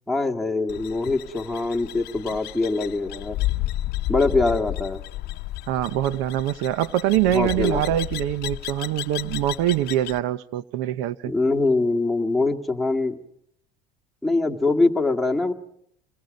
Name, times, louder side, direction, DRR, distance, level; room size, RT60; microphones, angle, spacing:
voice 1, 0.1-3.4 4.1-5.0 7.3-7.8 11.2-13.2 14.2-15.5, left 3 dB, ahead, 2.0 m, -23 dB
sound 1, 0.7-10.2, left 15 dB, 60° left, 0.8 m, -32 dB
voice 2, 5.7-11.3, right 13 dB, 80° right, 0.8 m, -24 dB
28.0 x 21.5 x 5.3 m
supercardioid pair, 105°, 19 cm